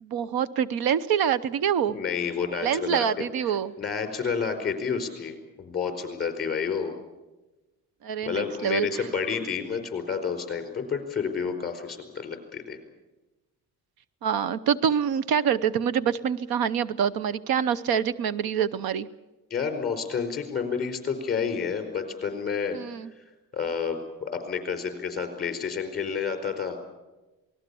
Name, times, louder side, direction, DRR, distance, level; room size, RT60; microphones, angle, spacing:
voice 1, 0.0-2.0 2.6-3.7 8.0-9.0 14.2-19.1 22.7-23.1, right 8 dB, 75° right, 16 dB, 0.9 m, -26 dB
voice 2, 1.9-6.9 8.2-12.8 19.5-22.8 23.5-26.8, left 6 dB, 25° left, 6 dB, 4.7 m, -30 dB
27.5 x 20.0 x 7.0 m, 1.1 s
cardioid pair, 170°, 37 cm